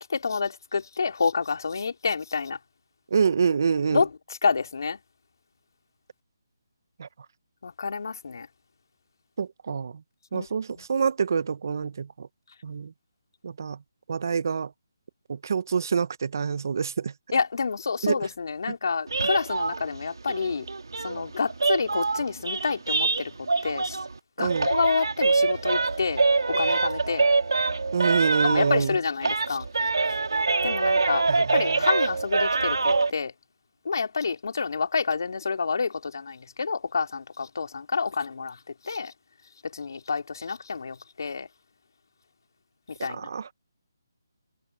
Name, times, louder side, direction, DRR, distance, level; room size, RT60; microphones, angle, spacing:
voice 1, 0.0-2.6 3.9-5.0 7.6-8.5 10.3-10.5 10.8-10.9 17.3-20.7 21.0-24.0 24.4-27.3 28.4-29.7 30.6-33.3 33.8-38.6 38.8-39.1 39.6-41.5 42.9-43.3, left 5 dB, 60° left, 3.7 m, -28 dB
voice 2, 3.1-4.0 7.0-7.1 9.4-10.0 10.3-12.3 12.6-12.9 13.4-13.8 14.1-14.7 15.3-17.1 18.0-18.2 24.4-24.7 27.9-28.9 31.3-31.6 43.0-43.5, right 6 dB, 55° right, 1.1 m, -26 dB
sound 1, 19.1-24.2 24.4-28.9 29.2-33.1, right 3 dB, 80° right, 2.7 m, -25 dB
hypercardioid pair, 160°, 2 cm